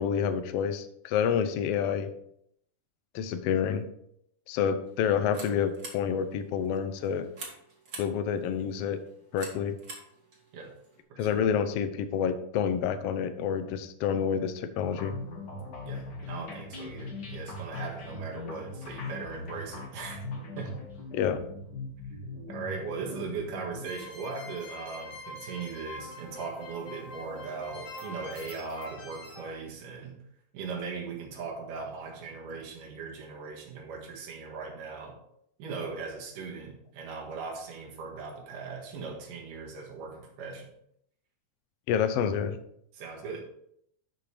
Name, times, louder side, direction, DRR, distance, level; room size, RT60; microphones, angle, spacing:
voice 1, 0.0-2.1 3.1-3.9 4.5-7.3 8.0-9.0 9.3-9.8 11.2-15.2 21.1-21.4 41.9-42.6, left 7 dB, 80° left, 9 dB, 1.4 m, -28 dB
sound 1, 4.8-11.0, right 2 dB, 35° right, 1.9 m, -48 dB
voice 2, 11.1-11.4 15.9-20.2 20.6-20.8 22.5-30.2 30.5-35.2 35.6-40.7 42.9-43.4, right 4 dB, 85° right, 0 dB, 3.3 m, -39 dB
sound 2, 14.8-29.5, left 2 dB, 40° left, 1.9 m, -41 dB
11.5 x 5.9 x 3.3 m, 0.71 s
omnidirectional pair, 3.6 m